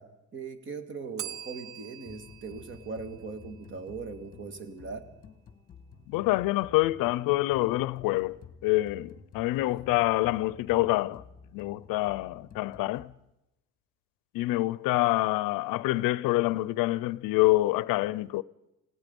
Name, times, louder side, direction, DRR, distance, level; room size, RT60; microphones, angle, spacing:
voice 1, 0.0-5.2, right 4 dB, 35° right, 1.9 m, -40 dB
Bell, 1.2-4.0, right 11 dB, 55° right, 1.0 m, -44 dB
Merx (Market Song), 2.0-13.0, left 5 dB, 25° left, 1.6 m, -51 dB
voice 2, 6.1-11.2 11.5-13.1 14.3-18.4, left 19 dB, 75° left, 0.6 m, -26 dB
28.5 x 17.5 x 5.3 m
cardioid pair, 165°, 34 cm